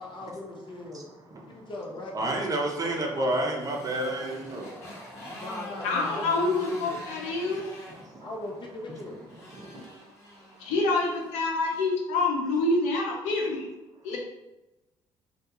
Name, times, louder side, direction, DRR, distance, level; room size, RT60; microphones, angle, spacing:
voice 1, 0.0-1.1 1.5-3.0 5.2-7.0 8.2-9.2, left 1 dB, 45° left, -1 dB, 0.7 m, -40 dB
voice 2, 0.9-1.7 2.1-5.4 7.4-8.3 9.3-10.0 10.3-10.7, right 1 dB, 30° right, 1 dB, 0.6 m, -33 dB
Motorcycle, 2.6-11.9, left 1 dB, 25° left, 1.3 m, -45 dB
voice 3, 5.8-7.6 10.6-13.7 14.0-14.2, left 3 dB, 85° left, 0 dB, 0.5 m, -26 dB
2.3 x 2.2 x 2.8 m, 1.0 s
supercardioid pair, 70°, 11 cm